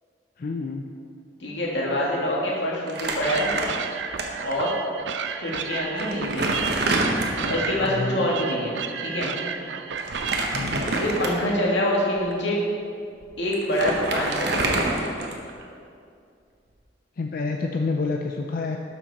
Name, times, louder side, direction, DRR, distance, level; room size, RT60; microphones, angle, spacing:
voice 1, 0.4-0.9 7.8-8.3 10.5-10.9 17.2-18.8, left 3 dB, 50° left, 3 dB, 0.4 m, -28 dB
voice 2, 1.4-3.5 4.4-4.7 5.4-6.5 7.4-9.3 11.0-12.6 13.4-15.0, left 1 dB, 85° left, -4 dB, 2.1 m, -25 dB
Crumpling crinkling, 2.9-4.2 4.5-4.6 5.5-5.6 6.0-7.8 10.0-11.6 12.2-12.3 13.2-13.3 13.5-15.6, right 2 dB, 65° right, 1.1 m, -27 dB
sound 1, 3.2-10.6, right 6 dB, 85° right, 0.5 m, -32 dB
11.5 x 6.0 x 4.1 m, 2.4 s
head